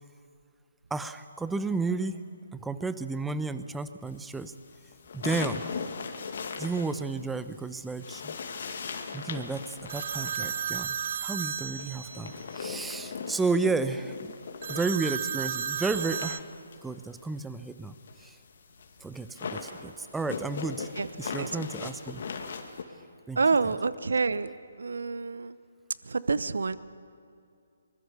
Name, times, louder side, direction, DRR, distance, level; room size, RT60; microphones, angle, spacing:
voice 1, 0.9-2.2 2.5-4.5 5.1-5.7 6.6-8.3 9.1-14.3 14.7-16.4 16.8-18.4 19.0-20.9 21.2-22.2 23.3-23.4, right 3 dB, 5° right, 12 dB, 0.8 m, -32 dB
sound 1, 4.4-7.6 7.9-15.2 15.5-22.8, left 5 dB, 55° left, 2.2 m, -39 dB
sound 2, 9.9-12.4 14.6-16.4, right 8 dB, 50° right, 0.5 m, -33 dB
voice 2, 23.4-25.6 26.0-26.8, right 4 dB, 75° right, 16 dB, 0.9 m, -28 dB
24.0 x 21.0 x 6.9 m, 2.4 s
figure-of-eight pair, 145°, 0 cm